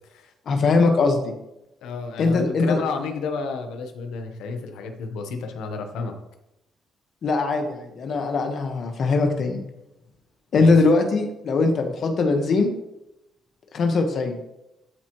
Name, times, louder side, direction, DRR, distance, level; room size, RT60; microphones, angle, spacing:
voice 1, 0.5-1.4 2.2-2.8 7.2-9.6 10.5-12.7 13.7-14.4, left 3 dB, 55° left, 4 dB, 1.3 m, -21 dB
voice 2, 1.8-6.1 10.5-10.7, left 4 dB, 90° left, 6 dB, 1.0 m, -31 dB
12.5 x 4.3 x 3.0 m, 0.89 s
cardioid pair, 90°, 0 cm